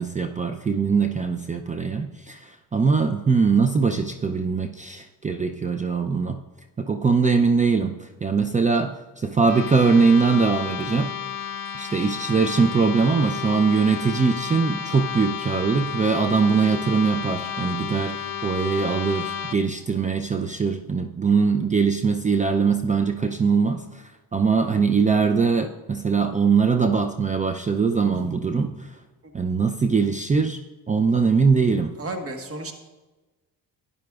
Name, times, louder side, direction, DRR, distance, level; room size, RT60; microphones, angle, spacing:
voice 1, 0.0-6.4 6.8-11.1 11.7-24.0 24.3-28.7 29.3-30.6 30.9-31.9, right 5 dB, 20° right, 6 dB, 0.4 m, -22 dB
sound 1, 9.4-19.6, left 8 dB, 60° left, 0.8 m, -32 dB
voice 2, 28.0-28.8 32.0-32.7, right 2 dB, 35° right, 5 dB, 1.5 m, -34 dB
12.0 x 9.7 x 2.4 m, 1.2 s
supercardioid pair, 80°, 38 cm